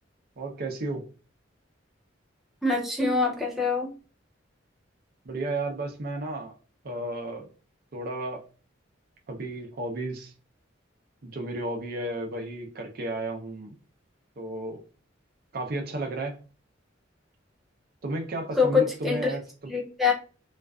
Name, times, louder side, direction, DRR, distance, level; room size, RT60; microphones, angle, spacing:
voice 1, 0.4-1.1 5.3-6.5 6.8-7.5 7.9-8.4 9.3-10.3 11.2-13.7 14.4-14.8 15.5-16.4 18.0-19.7, right 2 dB, 50° right, 4 dB, 0.5 m, -33 dB
voice 2, 2.6-3.9 18.6-19.3 19.7-20.1, left 4 dB, ahead, -1 dB, 0.4 m, -24 dB
2.5 x 2.3 x 2.3 m, 0.36 s
head